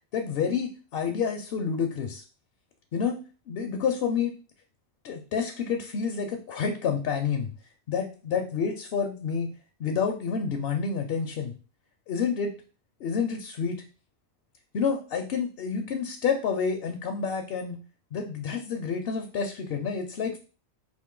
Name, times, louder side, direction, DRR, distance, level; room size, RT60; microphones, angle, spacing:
voice 1, 0.1-2.2 2.9-3.2 3.5-4.3 5.0-7.5 7.9-9.5 9.8-11.5 12.1-12.5 13.0-13.8 14.7-17.8 18.1-20.4, left 6 dB, 65° left, 4 dB, 0.7 m, -29 dB
4.4 x 2.5 x 3.7 m, 0.36 s
omnidirectional pair, 1.1 m